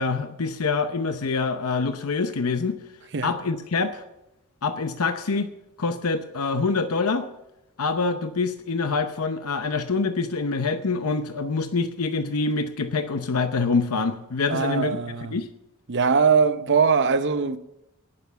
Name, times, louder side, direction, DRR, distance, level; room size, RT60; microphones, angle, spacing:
voice 1, 0.0-2.8 3.2-4.0 4.6-5.5 5.8-7.3 7.8-15.5, left 4 dB, 80° left, 0.8 m, -25 dB
voice 2, 14.5-15.4 15.9-17.6, right 5 dB, 55° right, 0.8 m, -21 dB
18.5 x 7.0 x 6.9 m
head